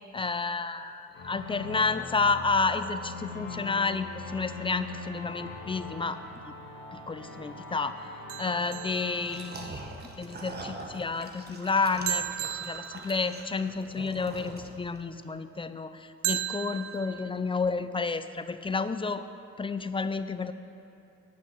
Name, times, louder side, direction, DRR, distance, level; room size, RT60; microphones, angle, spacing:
voice 1, 0.1-6.5 6.9-9.9 10.2-19.2 19.6-20.5, left 4 dB, 20° left, 11 dB, 0.4 m, -31 dB
sound 1, 1.1-10.5, left 3 dB, 45° left, 2.4 m, -42 dB
sound 2, 8.3-9.8 12.1-13.7 16.2-17.3, right 14 dB, 80° right, 0.5 m, -35 dB
sound 3, 9.2-15.0, right 2 dB, 35° right, 1.2 m, -43 dB
9.5 x 5.7 x 7.6 m, 2.7 s
cardioid pair, 90°, 30 cm